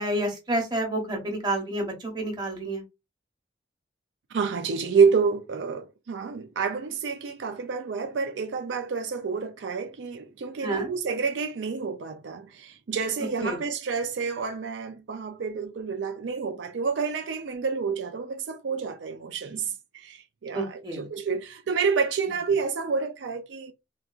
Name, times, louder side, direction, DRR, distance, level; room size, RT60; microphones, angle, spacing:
voice 1, 0.0-2.8 10.6-10.9 13.4-13.6 20.5-21.0, right 1 dB, 25° right, 1.0 m, -29 dB
voice 2, 4.3-23.7, right 5 dB, 75° right, 0.4 m, -28 dB
4.0 x 2.3 x 2.4 m
head